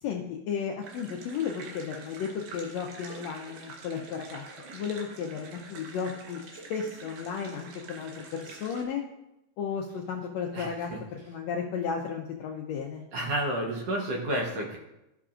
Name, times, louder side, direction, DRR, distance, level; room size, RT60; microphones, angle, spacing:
voice 1, 0.0-4.4 4.7-6.4 6.7-9.0 9.6-13.0, left 6 dB, 75° left, 1 dB, 1.6 m, -34 dB
sound 1, 0.8-8.8, right 3 dB, 80° right, 2.8 m, -46 dB
voice 2, 10.5-11.0 13.1-14.8, right 1 dB, 65° right, -1 dB, 1.7 m, -31 dB
15.5 x 5.8 x 2.5 m, 0.92 s
omnidirectional pair, 3.7 m